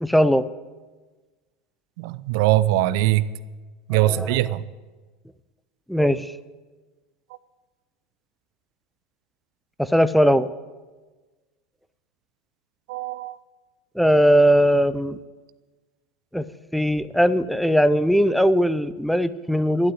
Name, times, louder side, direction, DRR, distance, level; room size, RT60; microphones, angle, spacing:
voice 1, 0.0-0.5 3.9-4.5 5.9-6.3 9.8-10.5 14.0-15.2 16.3-16.4 16.7-19.9, equal, ahead, 15 dB, 0.7 m, -19 dB
voice 2, 2.0-3.3 3.9-4.6 12.9-13.4, right 15 dB, 60° right, 16 dB, 0.6 m, -21 dB
13.0 x 11.5 x 8.0 m, 1.3 s
hypercardioid pair, 80°, 2 cm